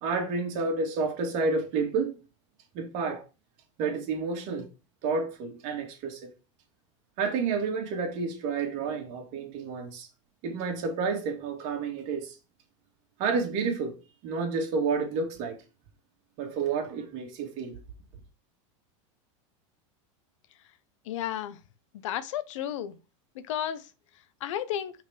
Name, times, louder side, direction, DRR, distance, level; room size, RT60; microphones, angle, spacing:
voice 1, 0.0-2.1 2.7-3.2 3.8-4.7 5.0-6.3 7.2-10.1 10.4-12.3 13.2-14.0 14.2-15.6 16.4-17.8, right 4 dB, 50° right, 2.4 m, -30 dB
voice 2, 21.1-21.6 22.0-23.0 23.3-23.9 24.4-24.9, left 10 dB, 75° left, 0.8 m, -32 dB
5.7 x 4.3 x 5.0 m
supercardioid pair, 140°, 16 cm